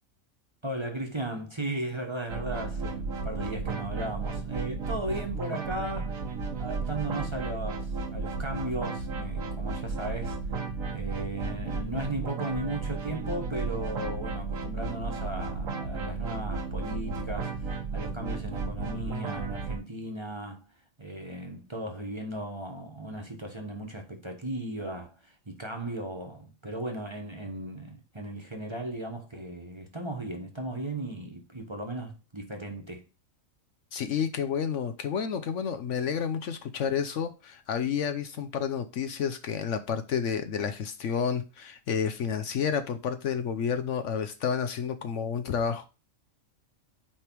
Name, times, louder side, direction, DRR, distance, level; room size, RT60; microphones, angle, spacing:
voice 1, 0.6-6.2 6.6-10.4 10.9-20.7 21.0-33.0, right 1 dB, 20° right, 1.2 m, -36 dB
sound 1, 2.3-19.8, right 4 dB, 75° right, 1.5 m, -33 dB
voice 2, 33.9-45.9, left 7 dB, 65° left, 1.0 m, -30 dB
8.7 x 3.4 x 4.5 m
omnidirectional pair, 1.4 m